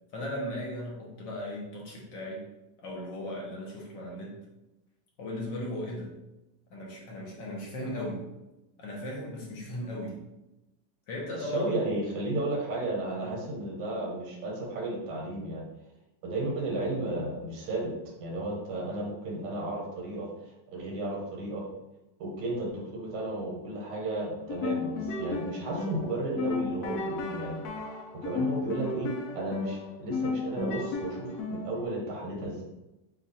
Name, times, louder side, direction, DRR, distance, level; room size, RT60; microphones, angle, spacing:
voice 1, 0.1-2.4 2.8-4.4 5.2-6.1 6.7-8.2 8.8-10.2 11.1-11.8 13.2-13.3, left 1 dB, 65° left, -2 dB, 1.5 m, -37 dB
voice 2, 11.4-15.6 16.2-17.9 18.2-20.3 20.7-21.7 22.2-27.6 28.1-32.6, right 2 dB, 85° right, -1 dB, 1.9 m, -33 dB
sound 1, 24.4-31.9, left 3 dB, 80° left, 0.8 m, -34 dB
7.1 x 2.4 x 2.7 m, 0.98 s
omnidirectional pair, 2.3 m